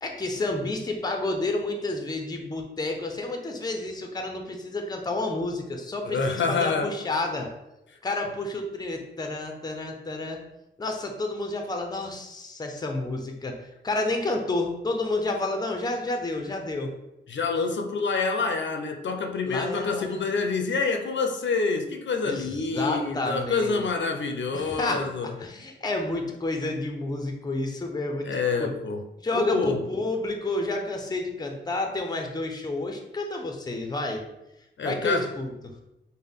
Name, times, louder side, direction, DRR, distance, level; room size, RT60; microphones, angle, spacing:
voice 1, 0.0-7.5 8.0-10.4 10.8-16.9 19.4-20.3 22.2-23.8 24.5-28.7 29.2-34.2 34.8-35.7, left 2 dB, 20° left, 3 dB, 0.5 m, -30 dB
voice 2, 6.0-6.9 17.3-25.4 28.2-29.1 29.3-29.8 34.8-35.3, left 4 dB, 75° left, 5 dB, 0.5 m, -27 dB
5.5 x 2.1 x 3.5 m, 0.91 s
wide cardioid pair, 155°, 19 cm